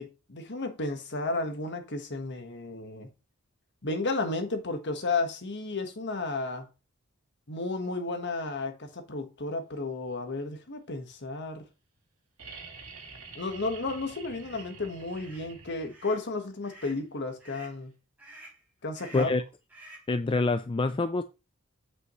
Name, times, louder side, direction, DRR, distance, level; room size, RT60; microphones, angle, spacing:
voice 1, 0.0-3.1 3.8-6.7 7.5-11.6 13.3-17.9 18.8-19.3, left 3 dB, 55° left, 1.5 m, -33 dB
sound 1, 12.4-16.2 17.9-18.0, right 4 dB, 75° right, 2.8 m, -47 dB
sound 2, 14.3-14.6 15.1-15.5 15.9-16.2 16.6-17.0 17.4-17.8 18.2-18.6 18.9-19.4 19.7-20.1, right 1 dB, 10° right, 4.4 m, -50 dB
voice 2, 20.1-21.2, left 3 dB, 25° left, 0.4 m, -26 dB
8.1 x 8.1 x 3.1 m
head